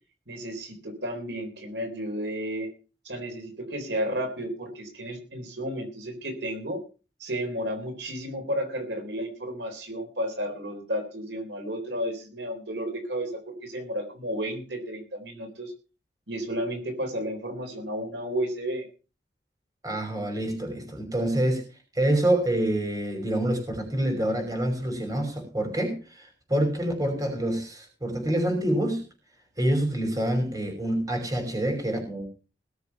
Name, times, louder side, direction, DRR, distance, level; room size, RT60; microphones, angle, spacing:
voice 1, 0.3-2.7 3.0-6.8 7.2-15.7 16.3-18.9, equal, 70° right, 4 dB, 3.9 m, -32 dB
voice 2, 19.8-21.6 21.9-29.0 29.6-32.3, right 1 dB, 20° right, 4 dB, 5.6 m, -27 dB
20.5 x 6.9 x 5.8 m, 0.35 s
head